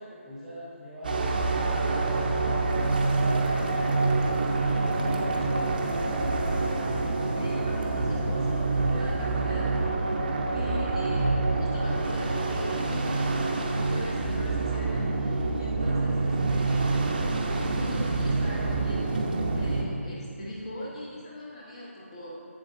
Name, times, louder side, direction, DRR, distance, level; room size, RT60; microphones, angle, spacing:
voice 1, 0.0-2.3 2.7-6.5, equal, 5° right, -10 dB, 1.0 m, -41 dB
sound 1, 1.0-19.8, right 3 dB, 40° right, 0.7 m, -26 dB
voice 2, 7.4-10.0 10.5-17.1 17.5-19.2 19.5-22.4, left 1 dB, 25° left, -5 dB, 1.0 m, -41 dB
7.8 x 7.4 x 2.7 m, 2.4 s
figure-of-eight pair, 165°, 8 cm